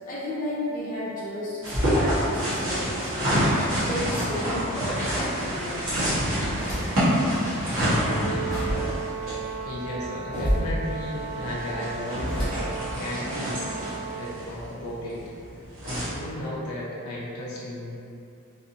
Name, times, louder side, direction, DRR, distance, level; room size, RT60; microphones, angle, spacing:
voice 1, 0.1-3.5 3.8-6.0, left 1 dB, 40° left, -10 dB, 1.0 m, -33 dB
sound 1, 1.6-16.1, equal, 65° right, 1.3 m, -27 dB
sound 2, 5.7-7.2 7.6-13.0, equal, 20° right, 0.9 m, -32 dB
Brass instrument, 7.9-14.3, right 6 dB, 45° right, 0.4 m, -36 dB
voice 2, 9.6-13.7 14.1-15.3 15.8-18.0, left 1 dB, 85° left, -6 dB, 0.5 m, -34 dB
3.4 x 2.8 x 2.6 m, 2.7 s
head